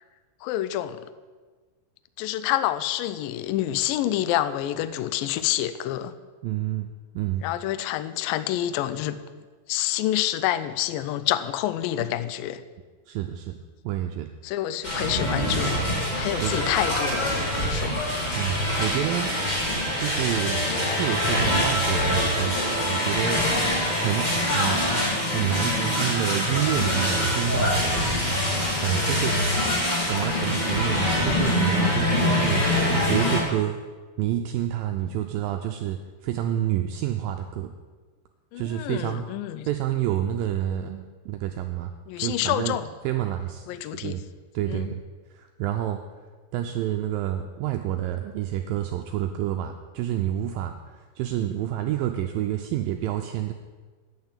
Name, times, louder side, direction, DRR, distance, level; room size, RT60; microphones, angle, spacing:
voice 1, 0.4-1.1 2.2-6.1 7.4-9.2 9.7-12.6 14.4-15.8 16.2-17.9 38.5-39.7 42.1-42.9 43.7-44.2 44.7-44.9, left 13 dB, 85° left, 12 dB, 2.1 m, -27 dB
voice 2, 6.4-6.9 7.1-7.4 12.0-12.1 13.1-13.6 13.8-14.3 16.4-16.5 18.4-19.3 20.0-24.9 25.2-27.9 28.8-29.4 30.1-32.7 33.1-33.8 34.2-37.7 38.5-39.3 39.7-42.8 43.0-43.7 43.9-44.3 44.5-45.0 45.3-46.0 46.5-53.5, right 12 dB, 90° right, 5 dB, 2.0 m, -28 dB
sound 1, 14.8-33.4, left 1 dB, 20° left, 1.3 m, -24 dB
9.6 x 8.9 x 7.3 m, 1.4 s
omnidirectional pair, 4.6 m